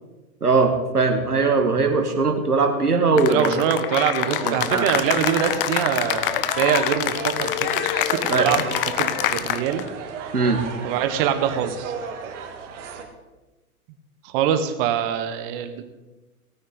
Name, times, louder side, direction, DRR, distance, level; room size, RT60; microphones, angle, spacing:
voice 1, 0.4-3.5 4.4-4.9 8.3-8.5 10.3-10.6, right 4 dB, 90° right, 5 dB, 1.8 m, -20 dB
voice 2, 3.1-9.8 10.8-11.9 14.2-15.8, right 9 dB, 35° right, 9 dB, 1.4 m, -24 dB
Cheering / Applause, 3.2-9.9, left 12 dB, 40° left, 0.7 m, -25 dB
sound 1, 4.2-13.0, right 6 dB, 55° right, 2.1 m, -36 dB
17.5 x 9.3 x 4.1 m, 1.1 s
figure-of-eight pair, 110°, 44 cm